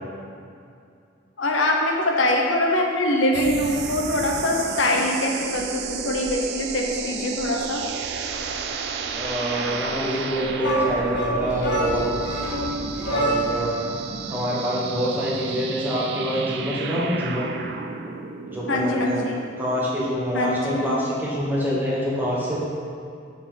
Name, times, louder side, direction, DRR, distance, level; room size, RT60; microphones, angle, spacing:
voice 1, 1.4-7.8 18.7-19.4 20.3-20.9, left 1 dB, 80° left, 0 dB, 0.8 m, -23 dB
sound 1, 3.3-20.1, right 5 dB, 60° right, 0.4 m, -32 dB
voice 2, 9.1-12.0 12.6-13.7 14.3-17.5 18.4-19.2 19.6-22.6, equal, 10° right, -7 dB, 1.3 m, -26 dB
sound 2, 10.6-13.7, right 1 dB, 65° left, 1.5 m, -26 dB
6.8 x 5.0 x 3.7 m, 2.4 s
head